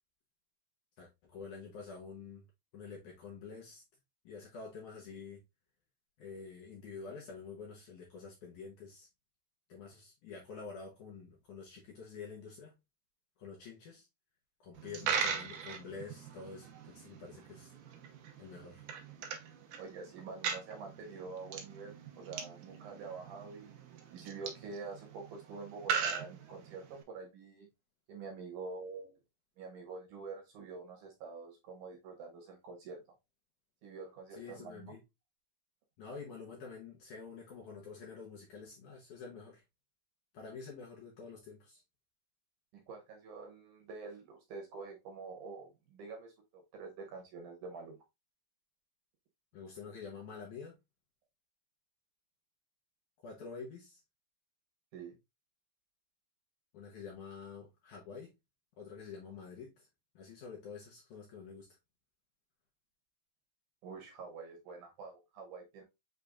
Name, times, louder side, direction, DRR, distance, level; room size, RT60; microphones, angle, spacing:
voice 1, 1.0-2.5 2.7-3.8 4.2-5.4 6.2-9.1 9.7-12.8 13.4-14.1 14.6-17.7 18.4-18.9 34.3-35.0 36.0-39.6 40.3-41.8 49.5-50.8 53.2-54.0 56.7-58.4 58.8-59.9 60.2-61.7, left 5 dB, 75° left, 1.8 m, -48 dB
Coin (dropping), 14.8-27.0, right 6 dB, 85° right, 1.7 m, -40 dB
voice 2, 19.8-27.7 28.1-29.1 29.6-33.0 33.8-34.9 42.7-48.0 54.9-55.2 63.8-65.8, right 4 dB, 70° right, 2.0 m, -47 dB
6.6 x 3.3 x 2.4 m
omnidirectional pair, 4.8 m